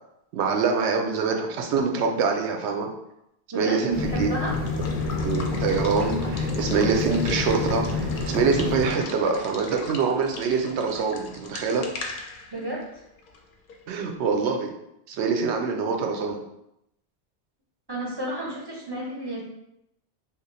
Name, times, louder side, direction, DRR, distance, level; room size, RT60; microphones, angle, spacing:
voice 1, 0.3-2.9 3.6-4.3 4.9-11.9 13.9-14.7 15.1-16.4, right 5 dB, 80° right, 3 dB, 0.8 m, -25 dB
voice 2, 3.5-4.5 12.5-13.0 17.9-19.4, right 1 dB, 25° right, -4 dB, 0.7 m, -31 dB
sound 1, 3.9-8.9, left 3 dB, 20° left, 0.3 m, -28 dB
Water / Water tap faucet / Liquid, 4.3-14.0, left 3 dB, 60° left, 0.6 m, -39 dB
2.9 x 2.4 x 3.9 m, 0.82 s
omnidirectional pair, 1.1 m